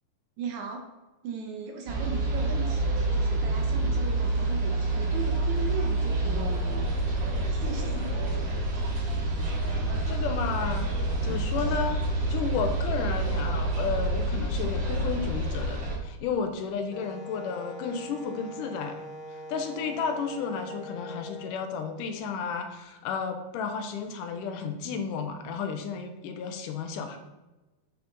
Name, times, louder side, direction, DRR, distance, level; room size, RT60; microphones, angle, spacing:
voice 1, 0.4-0.9 1.2-6.9 7.5-8.7, right 5 dB, 75° right, 3 dB, 1.9 m, -38 dB
sound 1, 1.9-16.0, right 2 dB, 50° right, 1.5 m, -28 dB
voice 2, 10.1-10.9 11.2-12.0 12.3-19.0 19.3-27.2, left 6 dB, 80° left, 5 dB, 2.2 m, -32 dB
Wind instrument woodwind instrument, 16.9-21.5, left 1 dB, 65° left, 2.2 m, -42 dB
9.3 x 4.1 x 3.9 m, 1.1 s
omnidirectional pair, 3.9 m